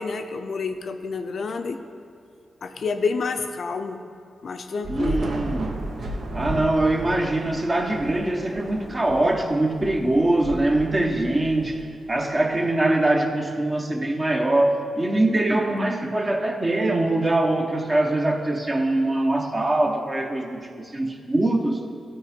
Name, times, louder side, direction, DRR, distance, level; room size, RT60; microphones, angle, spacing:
voice 1, 0.0-1.8 2.6-4.0 4.4-5.3, left 4 dB, 65° left, 6 dB, 0.5 m, -28 dB
Thunder / Rain, 4.8-12.4, right 2 dB, 70° right, 0.8 m, -34 dB
voice 2, 4.9-5.8 6.3-21.8, right 2 dB, 30° right, 3 dB, 1.0 m, -23 dB
12.0 x 4.4 x 4.3 m, 2.3 s
cardioid pair, 50°, 0 cm